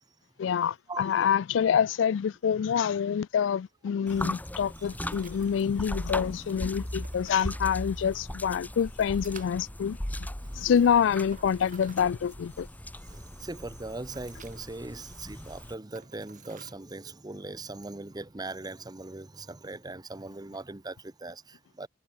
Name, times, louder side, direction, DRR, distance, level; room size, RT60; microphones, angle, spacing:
voice 1, 0.4-10.0 10.6-12.7, left 7 dB, 80° left, 0.3 m, -26 dB
sound 1, 1.3-18.8, right 6 dB, 45° right, 4.3 m, -57 dB
sound 2, 4.1-15.8, left 1 dB, 10° left, 1.2 m, -38 dB
voice 2, 13.1-21.9, right 2 dB, 20° right, 1.0 m, -40 dB
head